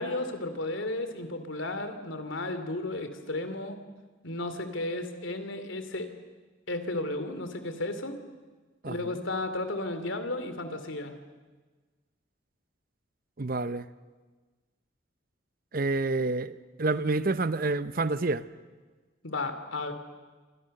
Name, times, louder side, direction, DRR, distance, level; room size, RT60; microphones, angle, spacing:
voice 1, 0.0-3.8 4.2-6.1 6.7-8.2 8.8-11.2 19.2-19.9, left 2 dB, 70° left, 2.8 m, -33 dB
voice 2, 8.8-9.2 13.4-13.9 15.7-18.4, right 3 dB, 45° right, 0.8 m, -28 dB
28.5 x 25.5 x 6.7 m
head